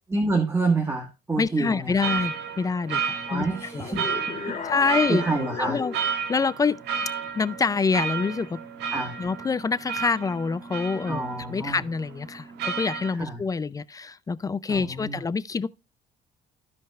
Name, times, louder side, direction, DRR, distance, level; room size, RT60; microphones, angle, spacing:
voice 1, 0.1-2.1 3.3-4.0 4.5-5.8 8.9-9.1 11.0-11.8 13.2-13.4 14.7-15.2, right 3 dB, 15° right, 1.5 m, -28 dB
voice 2, 1.4-3.5 3.7-3.9 4.6-5.2 5.6-5.9 6.3-6.8 7.3-8.6 9.2-11.2 11.5-15.7, left 5 dB, 20° left, 0.4 m, -26 dB
sound 1, 2.0-13.1, right 6 dB, 80° right, 1.6 m, -32 dB
sound 2, 3.8-6.1, left 6 dB, 45° left, 2.9 m, -35 dB
15.5 x 5.2 x 2.4 m
cardioid pair, 110°, 17 cm